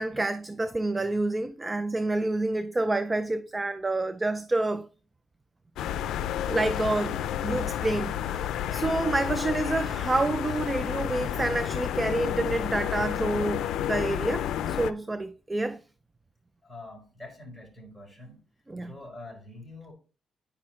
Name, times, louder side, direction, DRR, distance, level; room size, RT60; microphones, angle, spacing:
voice 1, 0.0-4.9 6.4-15.8 18.7-18.9, right 2 dB, 20° right, 0.4 m, -28 dB
sound 1, 5.8-14.9, left 10 dB, 85° left, 0.4 m, -31 dB
voice 2, 16.6-18.4 18.8-19.9, left 2 dB, ahead, 4.2 m, -45 dB
9.8 x 5.9 x 3.2 m
cardioid pair, 105°, 0 cm